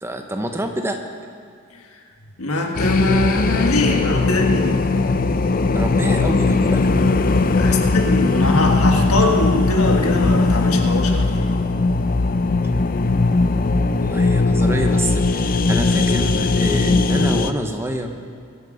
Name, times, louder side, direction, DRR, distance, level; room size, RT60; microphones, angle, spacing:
voice 1, 0.0-1.0 5.7-6.9 7.7-7.9 14.0-18.1, right 1 dB, 10° right, 4 dB, 0.9 m, -27 dB
voice 2, 2.4-4.8 7.5-11.5, left 2 dB, 90° left, 2 dB, 1.6 m, -22 dB
sound 1, 2.7-17.5, left 3 dB, 40° left, 0.5 m, -18 dB
22.5 x 8.2 x 5.1 m, 2.3 s
head